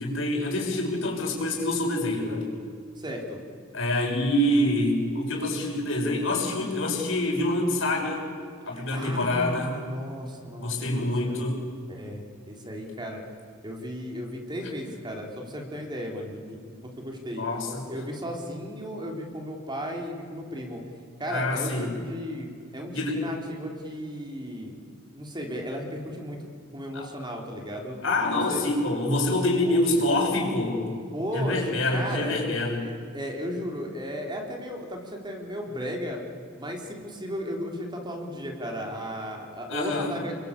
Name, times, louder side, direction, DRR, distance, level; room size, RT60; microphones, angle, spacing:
voice 1, 0.0-2.5 3.7-8.2 8.7-9.7 10.6-11.6 17.4-17.9 21.3-21.9 22.9-23.2 26.9-27.1 28.0-30.9 31.3-32.9 39.7-40.2, left 1 dB, 75° left, 1 dB, 6.4 m, -26 dB
voice 2, 3.0-3.4 8.7-11.4 11.9-13.2 13.6-17.4 17.9-20.8 21.2-24.7 25.1-26.4 26.7-28.0 28.5-28.6 29.7-30.0 31.1-32.4 32.8-36.2 36.5-40.4, equal, 25° right, 1 dB, 3.7 m, -35 dB
29.5 x 22.5 x 8.4 m, 2.3 s
head